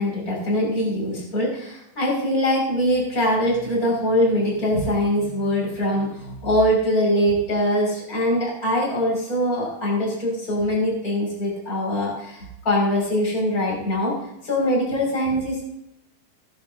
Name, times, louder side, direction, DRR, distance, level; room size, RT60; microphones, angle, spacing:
voice 1, 0.0-14.1 14.4-15.6, equal, 20° left, -2 dB, 6.3 m, -22 dB
18.0 x 14.5 x 2.8 m, 0.80 s
omnidirectional pair, 5.1 m